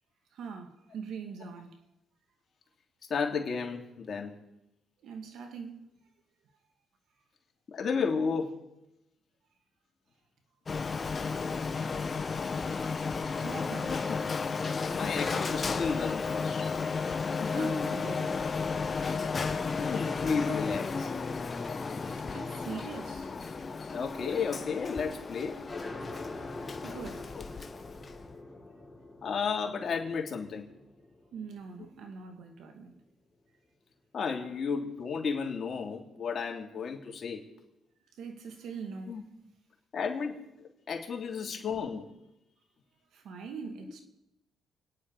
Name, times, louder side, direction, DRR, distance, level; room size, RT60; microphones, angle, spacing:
voice 1, 0.3-1.8 5.0-6.0 13.4-14.0 17.5-18.5 18.9-19.2 22.3-23.3 26.8-27.6 31.3-32.9 38.2-39.3 43.1-44.0, right 5 dB, 75° right, 2.3 m, -43 dB
voice 2, 3.1-4.3 7.7-8.6 13.9-14.0 14.9-16.7 17.4-17.9 19.8-21.1 23.9-25.6 27.3-27.4 29.2-30.7 31.8-31.9 34.1-37.4 39.1-39.2 39.9-42.1, left 5 dB, 50° left, 3.0 m, -33 dB
Printer, 10.7-28.3, left 4 dB, 35° left, 1.3 m, -33 dB
sound 1, 25.7-32.9, left 2 dB, 15° left, 4.0 m, -45 dB
29.0 x 10.0 x 4.9 m
cardioid pair, 90°, 0 cm